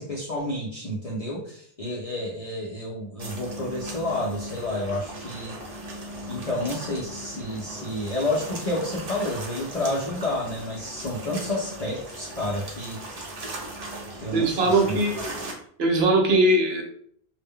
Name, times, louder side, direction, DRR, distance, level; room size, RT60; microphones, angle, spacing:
voice 1, 0.0-5.6 6.3-13.0 14.1-15.3, left 1 dB, 55° left, -4 dB, 0.4 m, -30 dB
sound 1, 3.2-15.5, right 1 dB, 45° right, 0.5 m, -38 dB
voice 2, 14.3-15.2 15.8-16.8, right 2 dB, 70° right, 2 dB, 0.8 m, -20 dB
2.0 x 2.0 x 3.6 m, 0.62 s
omnidirectional pair, 1.1 m